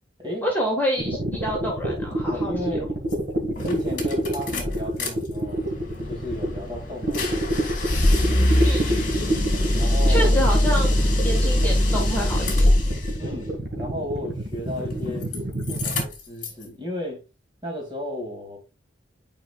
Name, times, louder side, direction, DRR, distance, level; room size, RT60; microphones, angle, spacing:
voice 1, 0.4-2.5 8.6-9.2 10.1-12.7, equal, 10° left, 1.6 m, -28 dB
sound 1, 1.0-6.6 7.0-16.0, right 1 dB, 60° right, 1.8 m, -28 dB
voice 2, 2.3-2.9 3.6-5.6 6.0-7.7 9.8-10.3 13.2-15.3 15.7-17.2 17.6-18.6, left 1 dB, 25° right, 2.5 m, -34 dB
sound 2, 3.1-3.2 3.6-5.1 5.4-13.2 14.7-15.4 15.6-16.6, left 1 dB, 45° left, 2.3 m, -22 dB
9.2 x 5.0 x 2.4 m
head